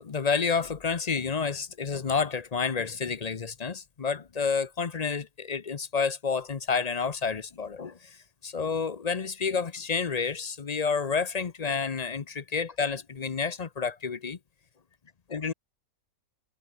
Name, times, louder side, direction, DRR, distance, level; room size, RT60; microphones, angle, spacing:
voice 1, 0.0-14.4 15.3-15.5, left 5 dB, 35° left, 0.7 m, -30 dB
omnidirectional pair, 1.6 m